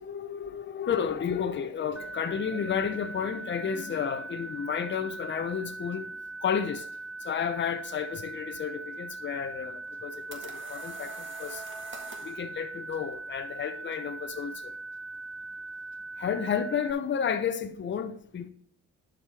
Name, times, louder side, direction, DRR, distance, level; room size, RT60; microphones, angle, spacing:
voice 1, 0.0-6.1 6.4-6.8 7.2-11.1 11.4-11.6 12.2-14.7 16.2-18.5, left 7 dB, 40° left, 0.8 m, -31 dB
sound 1, 2.0-16.9, right 3 dB, ahead, 0.3 m, -41 dB
sound 2, 9.9-12.4, right 3 dB, 40° right, 1.7 m, -45 dB
11.0 x 5.1 x 3.4 m
cardioid pair, 90°, 30 cm